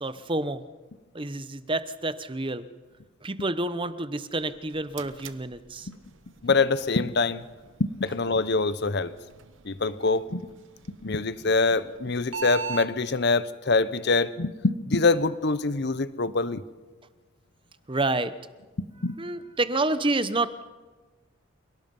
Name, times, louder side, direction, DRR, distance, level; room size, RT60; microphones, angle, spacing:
voice 1, 0.0-0.6 1.1-2.7 3.2-5.9 17.9-18.3 19.2-20.7, right 2 dB, 25° right, 13 dB, 0.8 m, -28 dB
sound 1, 4.5-12.9, right 6 dB, 70° right, 1.1 m, -42 dB
voice 2, 6.4-7.4 8.0-9.1 9.6-10.5 11.0-16.6 18.8-19.1, left 3 dB, 55° left, 15 dB, 0.8 m, -25 dB
29.0 x 17.5 x 5.4 m, 1.3 s
head